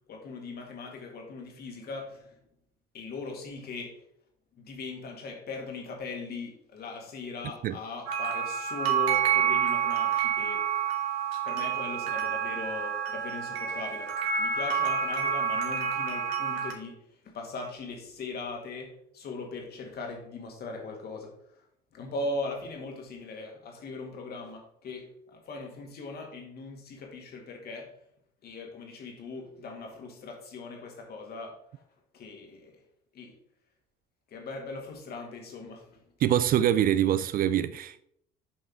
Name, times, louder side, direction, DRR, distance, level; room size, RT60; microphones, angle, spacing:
voice 1, 0.1-2.4 2.9-4.0 4.5-10.7 11.5-14.1 14.4-17.0 17.2-21.6 21.9-27.9 28.4-31.8 32.1-32.8 33.1-33.3 34.3-36.0, left 3 dB, 50° left, 1.9 m, -39 dB
sound 1, 8.1-16.7, right 7 dB, 70° right, 1.1 m, -28 dB
voice 2, 36.2-38.0, right 11 dB, 45° right, 0.4 m, -24 dB
7.9 x 5.4 x 3.5 m
hypercardioid pair, 55°, 21 cm